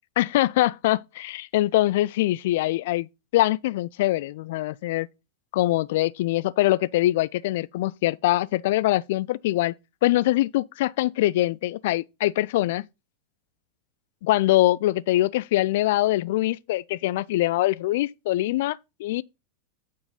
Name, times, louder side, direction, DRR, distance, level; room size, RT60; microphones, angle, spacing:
voice 1, 0.2-3.1 3.3-5.1 5.5-9.7 10.0-12.9 14.2-19.2, left 16 dB, 55° left, 0.4 m, -23 dB
8.8 x 4.6 x 5.5 m
figure-of-eight pair, 90°, 0 cm